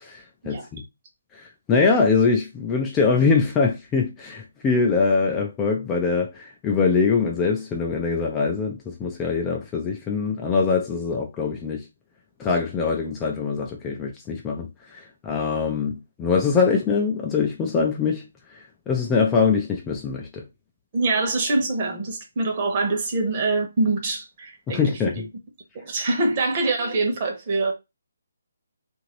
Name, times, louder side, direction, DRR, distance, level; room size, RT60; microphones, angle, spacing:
voice 1, 0.0-0.8 1.4-11.8 12.4-18.2 18.9-20.4 24.7-25.3, left 5 dB, 15° left, 0.5 m, -23 dB
voice 2, 20.9-24.8 25.1-25.2 25.7-27.7, right 3 dB, 35° right, 1.1 m, -24 dB
2.8 x 2.6 x 3.0 m
figure-of-eight pair, 150°, 0 cm